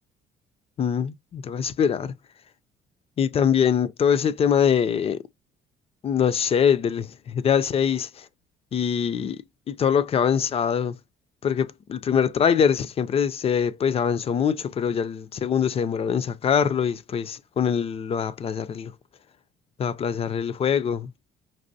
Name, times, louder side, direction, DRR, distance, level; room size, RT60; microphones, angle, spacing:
voice 1, 0.8-2.1 3.2-5.2 6.0-8.3 8.7-9.4 9.7-10.9 11.4-18.9 19.8-21.1, left 7 dB, 35° left, 0.4 m, -23 dB
5.3 x 2.9 x 2.6 m
cardioid pair, 110°, 17 cm